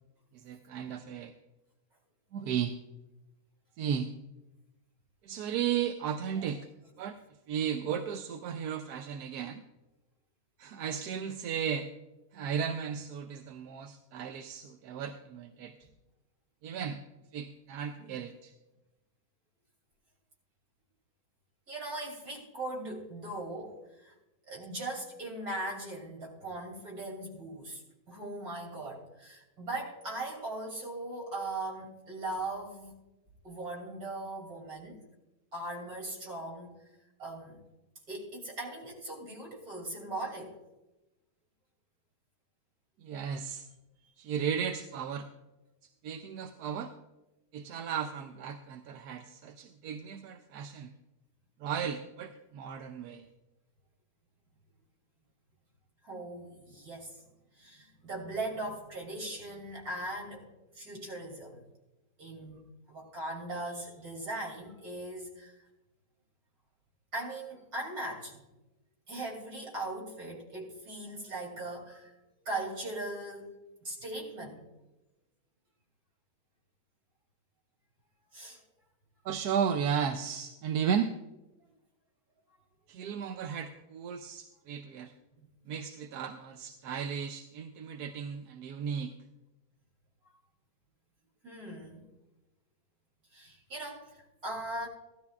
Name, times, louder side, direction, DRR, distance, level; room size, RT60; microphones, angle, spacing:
voice 1, 0.3-1.3 2.3-2.7 3.8-4.1 5.2-6.7 7.0-7.2 7.5-9.6 10.6-11.9 12.3-15.7 16.6-17.0 17.3-18.5 43.0-43.7 44.2-45.3 46.0-46.9 47.5-50.9 51.6-53.3 79.2-81.1 82.9-85.1 85.7-89.1, right 7 dB, 90° right, 7 dB, 1.2 m, -35 dB
voice 2, 21.7-24.1 24.5-27.8 28.1-32.9 33.4-35.0 35.5-36.8 37.2-37.6 38.1-40.6 56.0-57.2 57.6-60.4 60.7-61.6 62.2-65.6 67.1-68.4 69.1-72.1 72.4-73.5 73.8-74.6 78.3-78.6 85.4-85.5 91.4-92.1 93.3-94.9, right 2 dB, 70° right, -1 dB, 3.2 m, -39 dB
16.0 x 12.5 x 2.4 m, 0.99 s
omnidirectional pair, 1.6 m